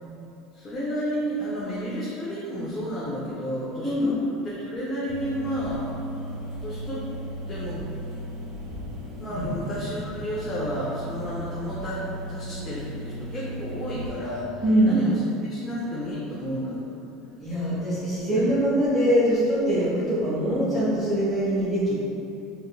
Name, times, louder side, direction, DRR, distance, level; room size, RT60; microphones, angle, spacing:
voice 1, 0.5-4.1 4.4-5.9 6.6-7.1 7.5-7.8 9.2-12.0 12.3-17.0 18.3-18.6, equal, 25° left, -8 dB, 0.7 m, -31 dB
sound 1, 5.1-14.1, right 1 dB, 55° right, 1.0 m, -36 dB
voice 2, 14.6-15.0 17.4-21.9, equal, 5° right, -13 dB, 1.0 m, -23 dB
4.8 x 2.6 x 2.3 m, 2.7 s
supercardioid pair, 120°, 0 cm